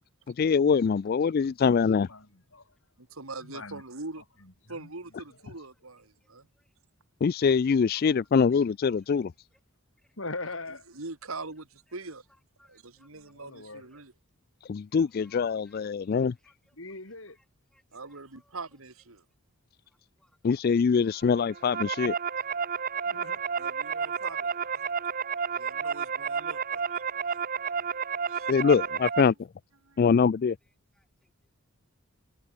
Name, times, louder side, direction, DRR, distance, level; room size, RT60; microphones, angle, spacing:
voice 1, 0.4-2.1 7.2-9.3 14.7-16.3 20.4-22.1 28.5-29.3 30.0-30.5, left 6 dB, 45° left, 0.3 m, -23 dB
voice 2, 2.0-2.6 3.4-3.8 4.2-4.9 10.2-10.9 13.1-13.9 16.7-17.4 23.1-23.4, left 3 dB, 65° left, 5.0 m, -41 dB
voice 3, 3.2-4.2 4.7-6.5 10.9-12.3 12.7-14.1 17.9-19.2 23.3-24.9 25.5-27.0 27.3-27.4 28.3-28.5 29.1-29.3 29.8-30.0, right 3 dB, 80° right, 2.5 m, -43 dB
voice 4, 12.6-13.1 13.9-14.0 15.1-16.8 17.3-17.4 17.7-18.6 20.2-20.6 21.8-22.0 22.5-23.5 23.8-24.7 25.2-25.4 26.7-28.6 30.6-31.3, left 1 dB, 5° left, 6.1 m, -68 dB
sound 1, 21.4-29.2, right 6 dB, 40° right, 0.9 m, -31 dB
head